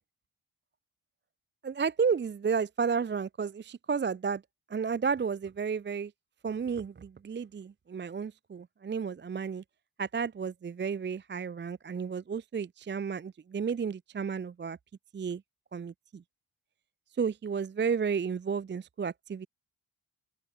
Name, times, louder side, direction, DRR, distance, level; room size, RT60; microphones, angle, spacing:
voice 1, 1.6-4.4 4.7-6.1 6.4-9.6 10.0-14.8 15.1-15.4 15.7-16.2 17.2-19.5, right 6 dB, 25° right, 0.4 m, -32 dB
open air
wide cardioid pair, 85°, 47 cm